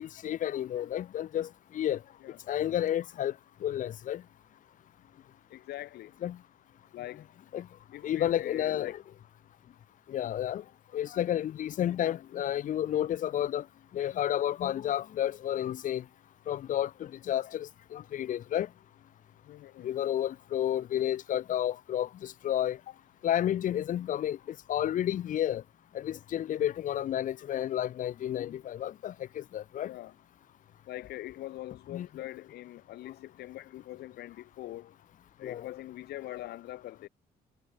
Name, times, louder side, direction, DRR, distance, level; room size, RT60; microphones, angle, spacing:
voice 1, 0.0-2.0 2.5-3.3 3.6-4.2 6.2-6.4 7.5-7.7 8.0-9.0 10.1-10.6 10.9-13.6 13.9-16.0 16.5-18.7 19.8-22.8 23.2-24.4 24.7-25.6 25.9-29.9 31.9-32.1 35.4-35.7, left 11 dB, 50° left, 0.9 m, -31 dB
voice 2, 5.5-6.1 6.9-7.3 7.9-8.9 19.4-19.9 22.9-23.0 29.8-30.1 30.9-34.9 35.4-37.1, left 15 dB, 75° left, 3.2 m, -43 dB
cardioid pair, 110°, 17 cm